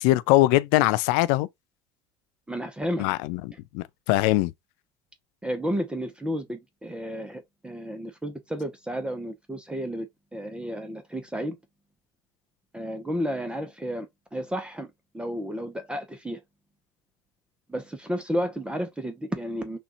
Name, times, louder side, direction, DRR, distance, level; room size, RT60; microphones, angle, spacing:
voice 1, 0.0-1.5 3.0-4.5, left 17 dB, 55° left, 0.5 m, -22 dB
voice 2, 2.5-3.1 5.4-11.6 12.7-14.9 15.1-16.4 17.7-19.8, equal, 10° right, 0.8 m, -32 dB
6.0 x 2.4 x 2.9 m
figure-of-eight pair, 70°, 13 cm